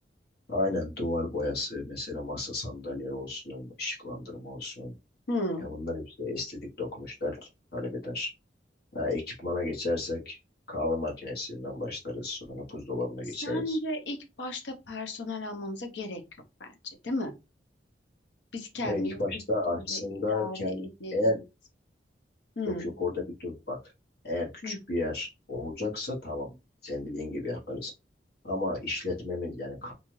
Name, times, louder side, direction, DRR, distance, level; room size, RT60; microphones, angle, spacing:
voice 1, 0.5-4.9 5.6-7.4 7.7-8.3 8.9-10.4 10.7-13.8 18.8-20.9 21.1-21.4 22.6-23.8 24.2-26.5 26.8-27.9 28.4-29.9, left 2 dB, 60° left, 1.0 m, -33 dB
voice 2, 5.3-5.7 13.4-16.2 16.6-17.3 18.5-19.2 19.9-20.0 20.3-21.4 22.6-22.9 24.6-24.8, left 1 dB, 85° left, 0.7 m, -34 dB
2.7 x 2.4 x 3.1 m
head